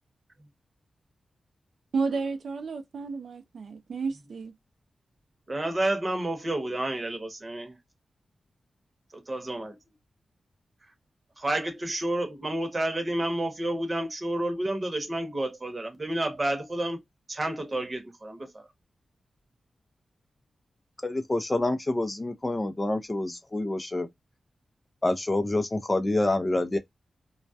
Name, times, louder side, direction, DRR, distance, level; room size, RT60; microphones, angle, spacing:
voice 1, 1.9-4.5, right 4 dB, 75° right, 0.5 m, -32 dB
voice 2, 5.5-7.8 9.1-9.8 11.4-17.0 17.3-18.7, right 1 dB, 25° right, 0.9 m, -30 dB
voice 3, 21.0-24.1 25.0-26.8, left 2 dB, 20° left, 0.4 m, -27 dB
2.2 x 2.1 x 2.6 m
wide cardioid pair, 110°, 0 cm